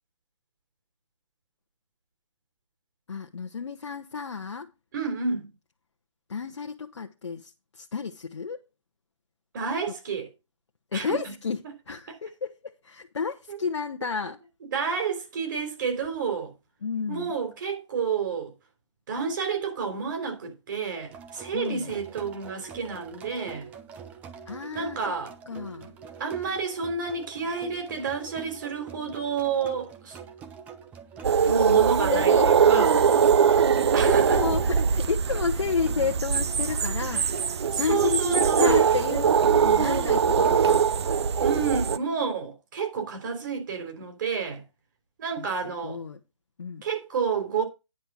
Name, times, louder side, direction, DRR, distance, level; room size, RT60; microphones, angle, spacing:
voice 1, 3.1-4.7 6.3-8.6 9.9-10.0 10.9-14.4 16.8-17.3 21.5-22.0 24.5-25.2 25.5-25.9 31.4-40.8 45.4-46.2 46.6-46.8, left 5 dB, 65° left, 1.0 m, -32 dB
voice 2, 4.9-5.5 9.5-10.3 10.9-11.2 13.5-13.6 14.7-16.5 17.1-18.5 19.1-23.7 24.7-25.3 26.2-30.2 31.5-32.9 33.9-34.4 37.7-38.8 41.4-44.6 45.2-46.0 46.8-47.6, right 5 dB, 40° right, 3.5 m, -30 dB
sound 1, 21.1-40.6, right 7 dB, 10° right, 0.6 m, -44 dB
sound 2, 31.2-42.0, right 7 dB, 60° right, 0.6 m, -22 dB
9.7 x 5.6 x 6.2 m
hypercardioid pair, 155°, 16 cm